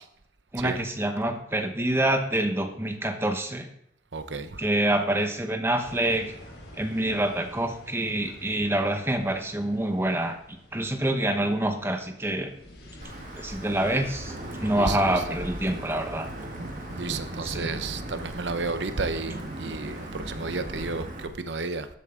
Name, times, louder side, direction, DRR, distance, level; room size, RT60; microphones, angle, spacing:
voice 1, 0.5-3.7 4.6-6.3 6.7-12.5 13.3-14.3 14.6-16.3 17.4-17.7, right 1 dB, 15° right, 5 dB, 1.0 m, -26 dB
voice 2, 4.1-4.6 14.8-15.2 16.9-21.9, right 3 dB, 85° right, 10 dB, 0.8 m, -32 dB
sound 1, 5.8-21.0, left 1 dB, 75° left, 3.7 m, -46 dB
Wind / Thunder / Rain, 13.0-21.3, right 1 dB, 50° right, 1.5 m, -38 dB
12.5 x 8.3 x 3.8 m, 0.72 s
head